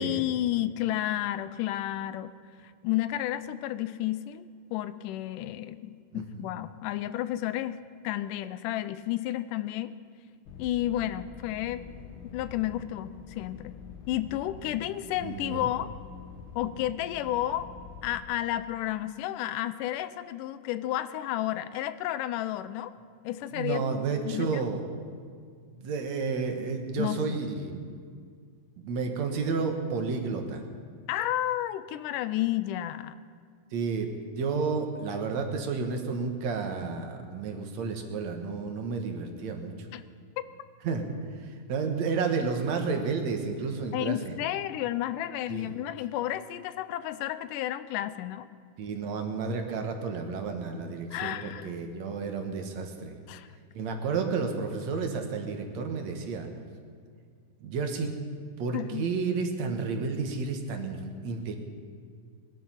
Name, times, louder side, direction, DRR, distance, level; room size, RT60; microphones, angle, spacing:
voice 1, 0.0-2.3 2.8-4.5 4.7-7.8 8.0-9.9 10.6-11.8 12.3-13.7 14.1-15.9 16.6-17.7 18.0-22.9 23.2-23.8 24.2-24.6 27.0-27.4 31.1-33.2 39.9-40.0 43.9-48.5 51.1-51.7 53.3-53.5 58.7-59.1, left 13 dB, 85° left, 14 dB, 2.1 m, -31 dB
voice 2, 6.1-6.5 15.2-15.7 23.5-24.8 25.8-27.9 28.8-30.6 33.7-39.7 40.8-41.1 41.4-44.4 45.5-45.8 48.8-53.2 53.7-56.5 57.6-58.1 58.6-61.6, right 4 dB, 65° right, 4 dB, 2.4 m, -31 dB
sound 1, 10.5-18.2, left 6 dB, 65° left, 1.3 m, -46 dB
20.5 x 12.0 x 5.6 m, 2.1 s
omnidirectional pair, 3.7 m